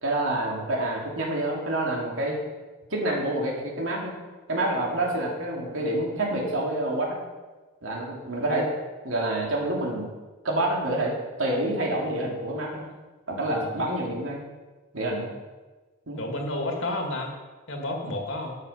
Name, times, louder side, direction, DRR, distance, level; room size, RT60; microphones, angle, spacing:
voice 1, 0.0-2.4 2.9-4.2 4.5-7.2 7.8-8.7 9.0-10.1 10.4-11.1 11.4-12.9 13.3-14.4 14.9-15.3 16.1-16.2, right 1 dB, 80° right, -2 dB, 2.8 m, -27 dB
voice 2, 16.2-17.3 17.7-18.6, left 1 dB, 75° left, 1 dB, 2.2 m, -31 dB
12.0 x 6.7 x 5.7 m, 1.2 s
head